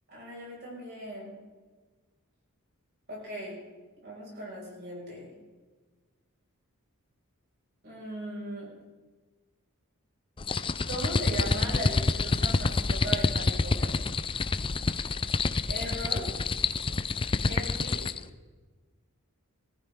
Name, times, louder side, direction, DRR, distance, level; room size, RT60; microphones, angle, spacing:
voice 1, 0.1-1.3 3.1-3.6 4.0-5.3 7.8-8.7 10.9-14.1 15.7-16.3 17.4-18.2, right 1 dB, 50° right, -4 dB, 5.8 m, -38 dB
sound 1, 10.4-18.2, left 3 dB, 25° left, 0.4 m, -28 dB
20.0 x 14.0 x 3.7 m, 1.3 s
head